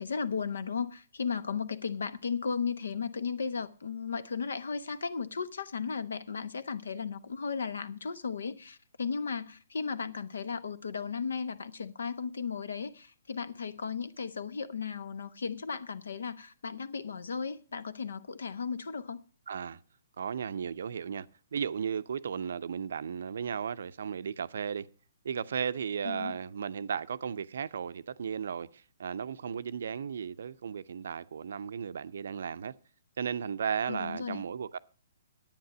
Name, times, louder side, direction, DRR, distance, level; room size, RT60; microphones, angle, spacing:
voice 1, 0.0-19.2 26.0-26.4 33.8-34.4, left 5 dB, 65° left, 0.9 m, -35 dB
voice 2, 19.5-19.8 20.2-21.3 21.5-24.9 25.2-32.8 33.2-34.8, right 7 dB, 60° right, 0.6 m, -35 dB
10.5 x 8.9 x 6.0 m
figure-of-eight pair, 125°, 0 cm